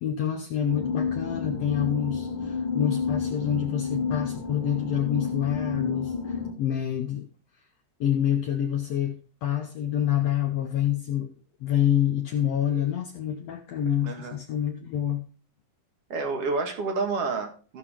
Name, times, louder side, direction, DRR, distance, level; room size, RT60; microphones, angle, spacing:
voice 1, 0.0-7.2 8.0-11.3 11.6-15.2, left 10 dB, 70° left, 4 dB, 1.7 m, -27 dB
sound 1, 0.7-6.5, left 5 dB, 20° left, 1.6 m, -30 dB
voice 2, 14.0-14.4 16.1-17.8, right 4 dB, 50° right, 5 dB, 2.5 m, -29 dB
14.5 x 6.5 x 3.7 m, 0.39 s
omnidirectional pair, 3.7 m